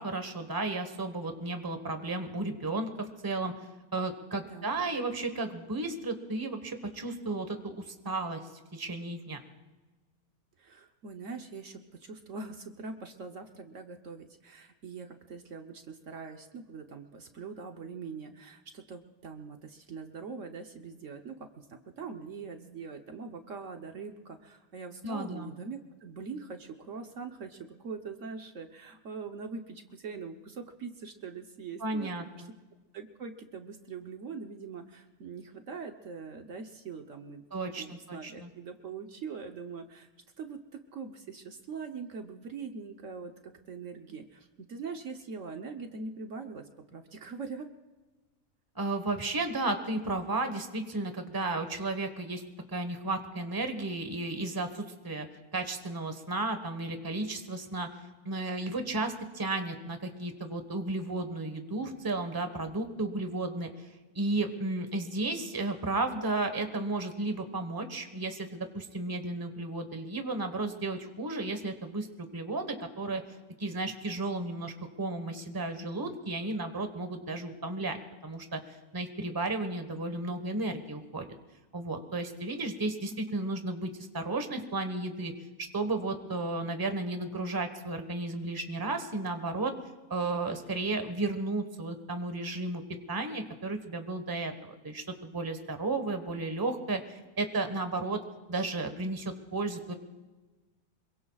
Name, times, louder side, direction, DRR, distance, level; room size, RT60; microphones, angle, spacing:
voice 1, 0.0-3.5 3.9-8.4 8.7-9.4 25.0-25.5 31.8-32.5 37.5-38.5 48.7-52.4 52.7-55.3 55.5-57.9 58.2-63.9 64.1-73.2 73.6-78.6 78.9-81.3 81.7-85.3 85.7-89.7 90.1-92.8 93.1-98.2 98.5-99.9, right 2 dB, 15° right, 7 dB, 1.2 m, -33 dB
voice 2, 10.6-32.1 32.4-32.5 32.9-40.1 40.4-47.7 83.1-83.2, right 5 dB, 60° right, 5 dB, 1.3 m, -42 dB
26.0 x 23.0 x 2.4 m, 1.2 s
omnidirectional pair, 1.5 m